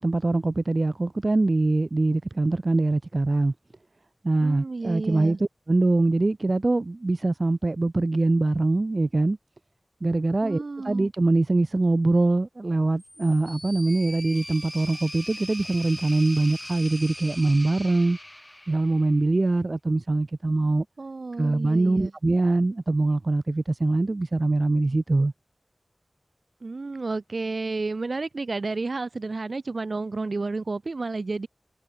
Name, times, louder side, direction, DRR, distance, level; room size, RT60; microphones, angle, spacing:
voice 1, 0.0-3.5 4.2-9.4 10.0-18.2 18.7-20.8 21.4-25.3, right 2 dB, 55° right, 0.8 m, -23 dB
voice 2, 4.4-5.4 10.4-11.1 21.0-22.1 26.6-31.5, right 3 dB, 75° right, 5.3 m, -31 dB
sound 1, 13.0-19.2, left 1 dB, 15° left, 3.1 m, -40 dB
wide cardioid pair, 45°, 0 cm